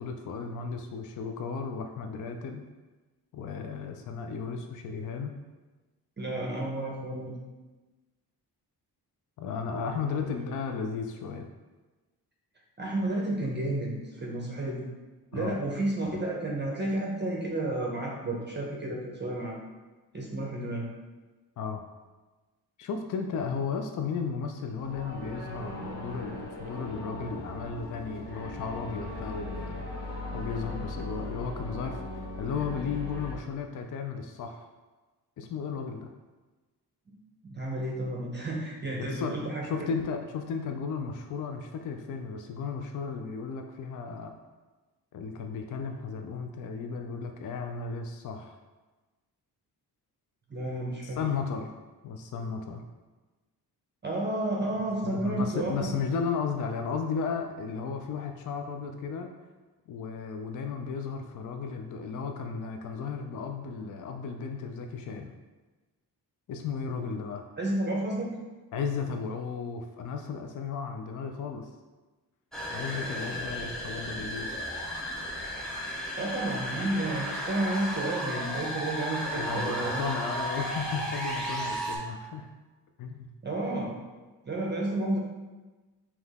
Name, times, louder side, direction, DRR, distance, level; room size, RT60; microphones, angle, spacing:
voice 1, 0.0-2.6 3.3-5.4 9.4-11.5 15.3-15.6 21.6-21.8 22.8-29.8 30.3-34.7 35.4-36.1 39.1-39.3 39.6-44.4 45.1-48.6 51.0-51.7 52.0-52.8 55.0-59.3 59.9-65.3 66.5-67.4 68.7-71.7 72.7-74.5 79.3-82.5 83.0-83.3, left 5 dB, 50° left, 5 dB, 0.4 m, -34 dB
voice 2, 6.2-7.4 12.8-14.9 15.3-19.6 20.1-20.9 37.1-37.2 37.4-39.7 50.5-51.2 54.0-55.7 67.6-68.3 76.2-80.0 83.4-83.9 84.5-85.2, right 1 dB, 25° right, -2 dB, 0.7 m, -31 dB
sound 1, 24.7-33.3, left 1 dB, 70° left, 1.1 m, -39 dB
sound 2, 72.5-82.0, equal, ahead, 0.9 m, -34 dB
3.8 x 3.0 x 3.5 m, 1.2 s
cardioid pair, 85°, 41 cm